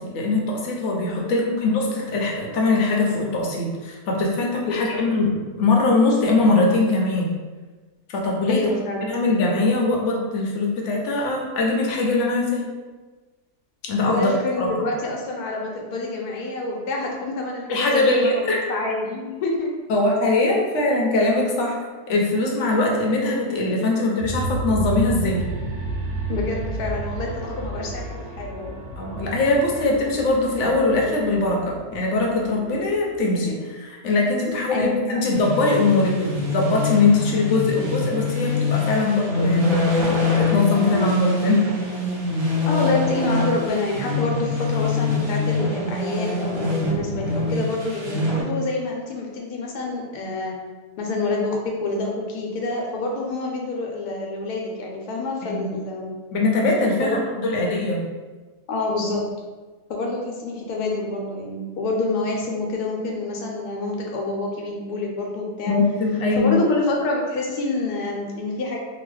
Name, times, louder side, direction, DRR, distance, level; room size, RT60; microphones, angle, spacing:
voice 1, 0.0-7.3 8.1-8.6 9.1-12.6 13.9-14.3 14.6-14.7 17.7-18.6 19.9-21.8 22.1-25.4 29.0-40.1 40.3-41.6 55.4-55.7 56.3-58.0 65.7-66.6, left 2 dB, 65° left, -1 dB, 0.8 m, -21 dB
voice 2, 8.5-9.0 14.1-19.7 26.3-28.8 34.7-35.2 42.7-50.6 51.0-56.1 57.0-57.2 57.4-57.6 58.7-59.2 59.9-65.7 66.4-68.8, left 2 dB, 90° left, 0 dB, 1.1 m, -27 dB
sound 1, 24.2-33.4, right 3 dB, 80° right, 1.2 m, -32 dB
sound 2, 35.3-48.4, left 3 dB, 55° right, 0.8 m, -24 dB
2.9 x 2.3 x 3.2 m, 1.3 s
omnidirectional pair, 1.6 m